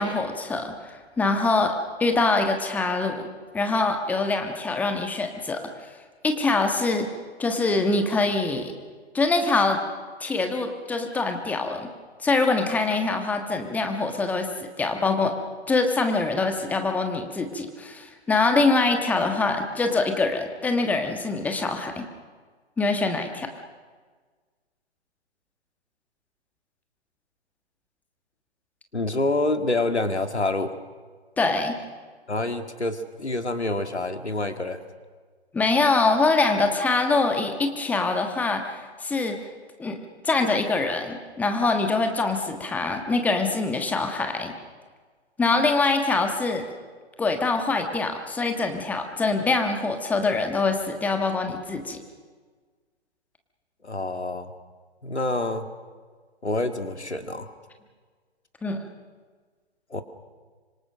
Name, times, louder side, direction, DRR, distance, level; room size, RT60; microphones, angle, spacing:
voice 1, 0.0-1.7 2.0-3.2 3.5-5.6 6.2-7.1 7.4-8.7 9.1-9.8 10.2-11.9 12.2-15.3 15.7-22.0 22.8-23.5 31.4-31.8 35.5-39.4 39.8-40.0 40.2-44.5 45.4-46.7 47.2-52.0 58.6-58.8, left 3 dB, 5° left, 5 dB, 1.4 m, -24 dB
voice 2, 28.9-30.7 32.3-34.8 53.8-54.5 55.0-55.7 56.4-57.5 59.9-60.0, left 2 dB, 80° left, 8 dB, 2.1 m, -27 dB
25.5 x 25.0 x 6.5 m, 1.5 s
figure-of-eight pair, 130°, 33 cm